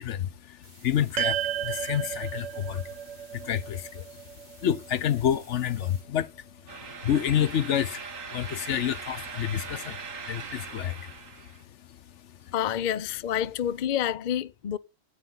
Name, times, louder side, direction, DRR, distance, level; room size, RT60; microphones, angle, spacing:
voice 1, 0.0-12.5, left 10 dB, 70° left, 1.0 m, -30 dB
sound 1, 0.6-6.0, right 1 dB, 35° right, 3.3 m, -55 dB
sound 2, 1.2-5.6, right 11 dB, 75° right, 1.1 m, -34 dB
sound 3, 6.7-11.6, right 5 dB, 90° right, 1.9 m, -40 dB
voice 2, 12.5-14.8, left 10 dB, 45° left, 0.7 m, -28 dB
13.5 x 9.0 x 3.9 m
omnidirectional pair, 1.3 m